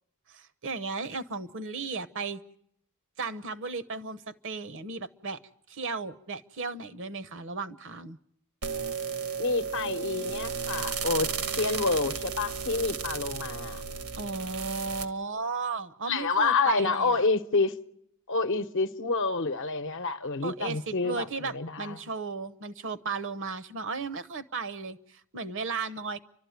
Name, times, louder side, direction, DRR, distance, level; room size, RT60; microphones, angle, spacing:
voice 1, 0.3-2.4 3.2-5.4 5.7-8.2 14.2-17.2 20.4-26.2, right 4 dB, 60° right, 0.9 m, -35 dB
sound 1, 8.6-15.0, right 6 dB, 85° right, 1.4 m, -34 dB
voice 2, 9.4-13.8 16.1-17.7 18.3-22.0, left 3 dB, 60° left, 0.8 m, -28 dB
30.0 x 12.5 x 9.4 m
head